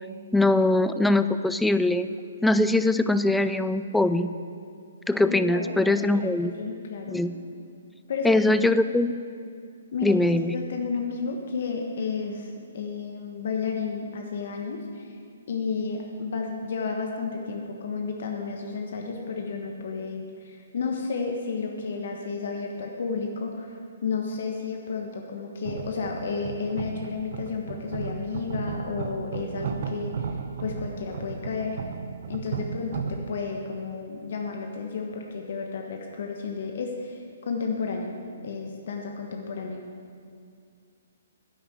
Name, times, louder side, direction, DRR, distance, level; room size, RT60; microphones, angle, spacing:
voice 1, 0.3-2.1 2.4-4.3 5.1-6.5 7.1-7.3 8.2-9.1 10.0-10.6, left 2 dB, 5° left, 12 dB, 0.4 m, -22 dB
voice 2, 5.3-7.2 8.1-8.4 9.9-10.2 10.5-15.1 15.5-30.3 30.6-31.8 32.3-39.8, left 5 dB, 60° left, 2 dB, 1.4 m, -32 dB
sound 1, 25.6-33.3, right 6 dB, 55° right, 1.0 m, -35 dB
10.5 x 8.9 x 7.9 m, 2.3 s
hypercardioid pair, 145°, 0 cm